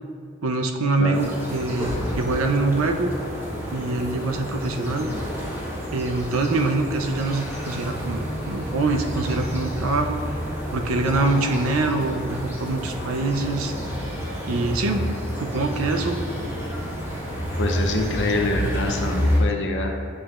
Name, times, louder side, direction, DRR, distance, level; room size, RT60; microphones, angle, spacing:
voice 1, 0.4-3.1 3.7-5.1 5.9-10.4 10.7-13.7 14.5-15.0 15.4-16.2, right 3 dB, 80° right, 5 dB, 0.5 m, -24 dB
sound 1, 1.1-19.4, equal, 10° right, 1.2 m, -29 dB
voice 2, 17.6-19.9, left 2 dB, 60° left, 3 dB, 0.7 m, -25 dB
8.4 x 4.9 x 2.4 m, 2.2 s
head